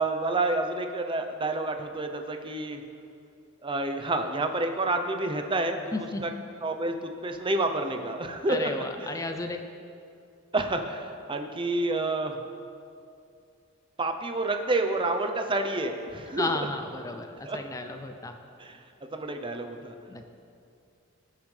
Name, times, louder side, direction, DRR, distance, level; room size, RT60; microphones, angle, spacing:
voice 1, 0.0-2.8 3.6-6.3 6.6-9.1 10.5-12.4 14.0-16.5 17.4-17.6 18.6-18.8 19.1-19.9, right 2 dB, 25° right, 5 dB, 0.6 m, -29 dB
voice 2, 5.9-6.3 8.5-9.7 16.4-18.3 20.1-20.2, left 2 dB, 15° left, 6 dB, 0.4 m, -33 dB
17.0 x 6.8 x 3.3 m, 2.5 s
head